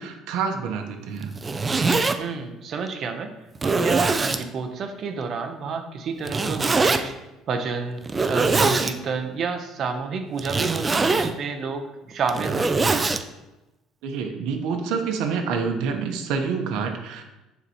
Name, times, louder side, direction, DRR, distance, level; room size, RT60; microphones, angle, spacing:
voice 1, 0.0-1.3 14.0-17.2, right 5 dB, 75° right, 3 dB, 0.9 m, -27 dB
Zipper (clothing), 1.2-2.2 2.9-3.0 3.6-4.4 6.3-7.0 8.0-8.9 10.4-11.3 12.1-13.2, right 3 dB, 20° right, 0.4 m, -22 dB
voice 2, 2.2-3.3 3.6-7.1 7.5-13.1, right 5 dB, 45° right, 6 dB, 0.8 m, -30 dB
9.6 x 4.1 x 3.0 m, 0.99 s
cardioid pair, 135°, 0 cm